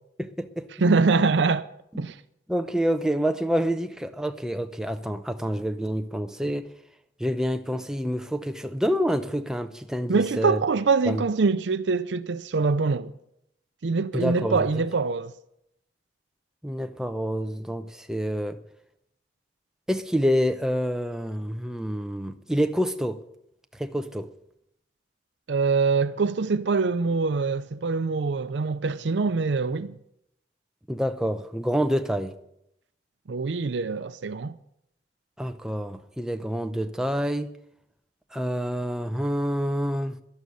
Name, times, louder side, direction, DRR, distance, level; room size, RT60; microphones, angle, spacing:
voice 1, 0.2-0.7 1.9-2.0 2.5-6.7 7.2-10.6 11.1-11.2 14.1-14.7 16.6-18.6 19.9-23.2 23.8-24.3 30.9-32.3 35.4-37.5 38.3-40.2, equal, 5° right, 0.6 m, -27 dB
voice 2, 0.8-1.7 2.0-2.2 10.1-13.1 13.8-15.3 25.5-29.9 33.3-34.5, right 4 dB, 80° right, 0.5 m, -24 dB
11.5 x 11.5 x 6.8 m
head